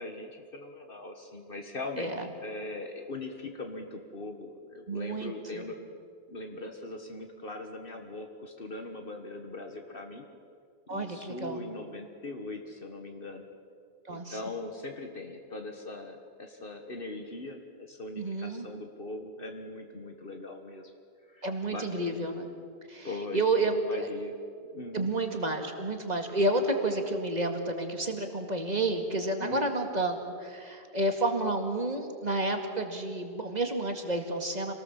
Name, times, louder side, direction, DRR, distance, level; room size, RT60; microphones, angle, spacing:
voice 1, 0.0-6.0 6.3-10.3 10.9-13.5 14.1-20.9 21.3-22.2 23.0-24.4 24.7-25.1 29.4-29.7, left 2 dB, 60° left, 4 dB, 1.7 m, -41 dB
voice 2, 2.0-2.3 4.9-5.7 10.9-11.6 14.1-14.4 18.2-18.7 21.4-22.5 22.9-24.1 24.9-34.7, right 2 dB, 40° right, 4 dB, 2.2 m, -30 dB
26.0 x 18.5 x 7.4 m, 2.3 s
omnidirectional pair, 1.0 m